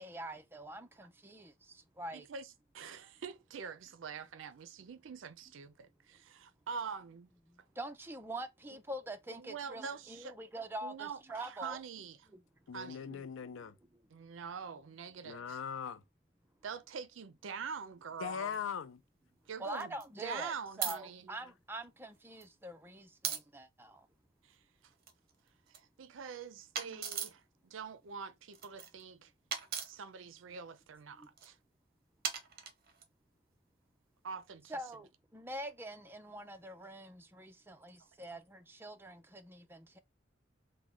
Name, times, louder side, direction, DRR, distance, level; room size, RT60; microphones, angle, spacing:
voice 1, 0.0-2.3 7.5-11.8 12.3-12.4 13.1-13.3 19.6-24.1 26.8-27.1 31.1-31.3 34.7-40.0, right 1 dB, 10° right, 0.4 m, -45 dB
voice 2, 2.1-2.5 2.7-7.3 9.3-10.4 10.8-12.2 12.7-13.1 14.1-15.6 16.6-18.6 19.5-19.9 20.2-21.3 24.4-24.9 25.8-29.3 29.8-31.6 34.2-34.8, right 6 dB, 75° right, 0.4 m, -45 dB
voice 3, 12.7-13.8 15.2-16.0 18.2-19.0, left 7 dB, 80° left, 0.4 m, -40 dB
sound 1, 18.5-18.6 19.7-20.0 20.8-21.0 22.1-22.4 23.2-23.4 24.9-25.8 26.7-27.4 28.5-29.0 29.5-29.9 31.2-31.5 32.2-33.1, right 7 dB, 50° right, 0.8 m, -38 dB
3.5 x 2.1 x 3.6 m
head